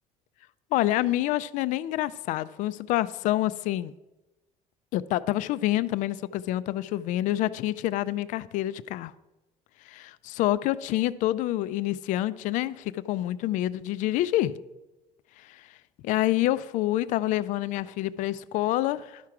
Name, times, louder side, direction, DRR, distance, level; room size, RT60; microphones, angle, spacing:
voice 1, 0.7-3.9 4.9-9.1 9.9-14.5 15.5-15.6 16.0-19.2, left 15 dB, 60° left, 16 dB, 0.4 m, -27 dB
12.0 x 5.9 x 4.8 m, 1.0 s
cardioid pair, 140°, 14 cm